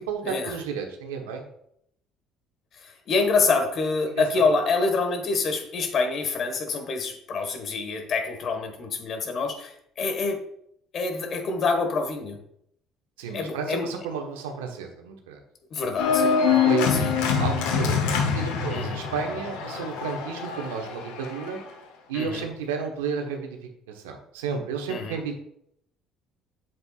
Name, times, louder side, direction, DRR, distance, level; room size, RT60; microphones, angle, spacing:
voice 1, 0.1-1.5 4.2-4.4 13.2-15.4 15.7-15.9 16.5-18.1 18.3-21.6 22.1-23.6 23.9-25.3, right 6 dB, 85° right, 3 dB, 1.1 m, -32 dB
voice 2, 2.8-10.4 10.9-12.4 13.3-13.9 15.7-16.4 16.9-17.1 18.7-19.0 22.1-22.5 24.9-25.2, left 4 dB, 55° left, 5 dB, 1.5 m, -26 dB
Organ, 16.0-21.6, left 6 dB, 80° left, 1.0 m, -25 dB
8.1 x 7.3 x 2.4 m, 0.73 s
hypercardioid pair, 60°, 0 cm